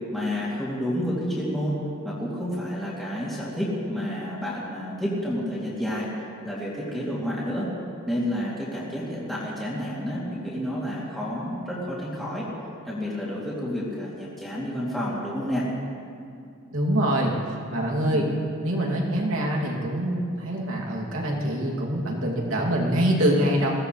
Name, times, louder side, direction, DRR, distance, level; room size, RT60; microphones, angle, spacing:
voice 1, 0.1-1.8 2.0-6.1 6.4-7.7 8.1-12.5 12.8-15.7 18.1-18.3, equal, ahead, -8 dB, 3.0 m, -30 dB
voice 2, 16.7-18.3 18.6-23.7, right 1 dB, 80° right, -2 dB, 2.8 m, -25 dB
22.0 x 17.0 x 3.3 m, 2.4 s
head